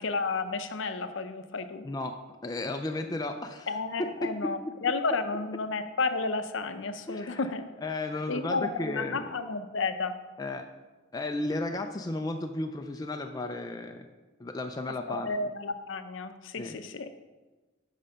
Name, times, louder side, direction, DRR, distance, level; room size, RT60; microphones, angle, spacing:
voice 1, 0.0-1.9 3.7-7.6 8.3-10.2 15.1-17.1, left 3 dB, 60° left, 9 dB, 0.6 m, -32 dB
voice 2, 1.8-3.7 4.2-4.3 7.1-7.4 7.8-9.3 10.4-10.7 11.1-14.1 14.4-15.3 16.6-16.8, left 2 dB, 20° left, 5 dB, 0.3 m, -34 dB
8.6 x 5.1 x 5.6 m, 1.2 s
head